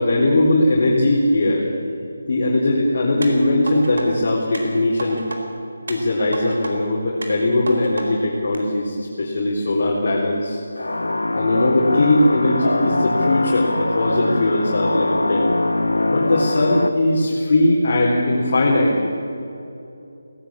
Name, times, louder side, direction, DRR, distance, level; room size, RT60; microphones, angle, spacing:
voice 1, 0.0-1.7 2.3-5.2 5.9-10.6 11.3-15.5 16.1-19.1, left 1 dB, 50° left, -4 dB, 4.0 m, -19 dB
sound 1, 3.2-4.1 4.5-5.4 5.9-6.7 7.2-8.1 8.5-8.6, right 2 dB, 75° right, 4.3 m, -32 dB
sound 2, 10.8-16.9, left 2 dB, 85° left, 1.4 m, -22 dB
19.0 x 17.5 x 8.7 m, 2.8 s
figure-of-eight pair, 160°, 0 cm